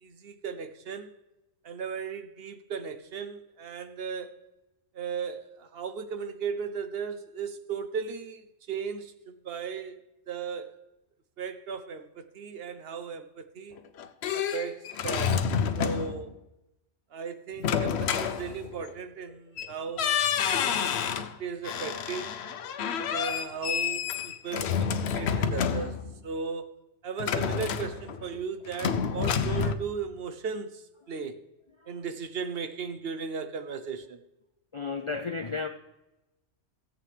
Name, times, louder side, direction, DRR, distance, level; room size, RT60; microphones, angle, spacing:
voice 1, 0.0-1.1 1.6-4.4 4.9-10.0 10.3-10.8 11.4-13.8 14.3-15.4 15.8-16.3 17.1-20.2 21.1-22.4 23.1-26.7 27.0-31.4 31.9-34.2, right 6 dB, 60° right, 0.9 m, -36 dB
sound 1, 13.8-16.3 17.6-18.9 19.6-19.7 20.0-21.3 21.6-26.2 27.2-28.4 28.7-29.7, left 7 dB, 65° left, 0.9 m, -29 dB
voice 2, 34.7-35.7, left 4 dB, 45° left, 0.4 m, -33 dB
16.5 x 7.6 x 3.3 m
omnidirectional pair, 1.2 m